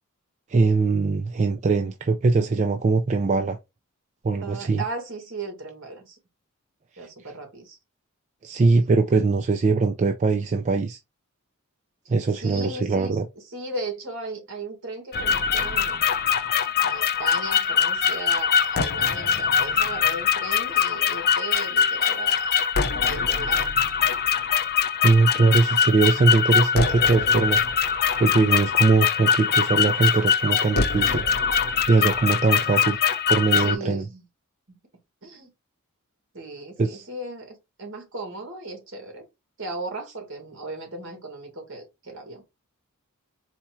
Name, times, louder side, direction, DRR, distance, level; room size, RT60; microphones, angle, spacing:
voice 1, 0.5-3.6 4.2-4.8 8.4-11.0 12.1-13.3 25.0-27.6 28.2-31.3 31.9-33.0 33.3-34.0 36.8-37.1, right 3 dB, 30° right, 0.3 m, -21 dB
voice 2, 4.4-6.2 7.0-7.8 12.3-13.2 13.4-16.0 16.8-23.7 33.6-34.2 34.7-34.8 35.2-35.5 36.3-39.3 39.6-42.4, right 2 dB, 60° right, 1.8 m, -36 dB
sound 1, 15.1-33.7, left 7 dB, 45° left, 0.5 m, -23 dB
4.3 x 2.3 x 4.3 m
head